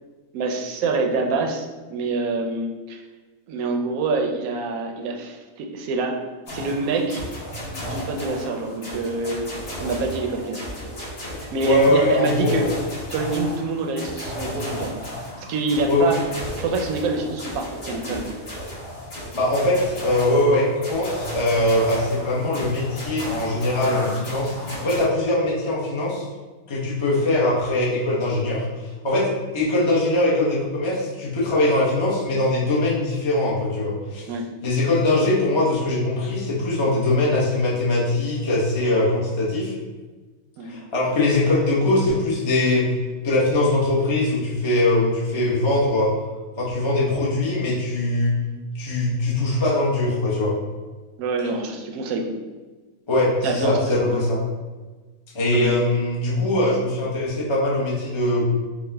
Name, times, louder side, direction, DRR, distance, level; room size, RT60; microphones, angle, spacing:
voice 1, 0.3-3.0 3.5-6.2 6.5-7.2 7.7-10.7 11.4-12.7 13.1-14.9 15.4-16.2 16.6-18.3 34.3-34.5 40.6-40.8 51.2-52.3 53.4-54.3 55.5-55.8, right 3 dB, 75° right, 2 dB, 1.0 m, -26 dB
sound 1, 6.5-25.0, equal, 65° left, 1.7 m, -34 dB
voice 2, 11.6-12.6 15.9-16.2 19.3-26.2 26.7-28.7 29.0-34.3 34.6-39.7 40.6-42.9 43.2-46.1 46.6-48.4 48.7-50.6 53.1-54.4 55.3-58.4, left 1 dB, 35° left, -6 dB, 0.5 m, -21 dB
4.7 x 2.1 x 3.3 m, 1.3 s
omnidirectional pair, 1.5 m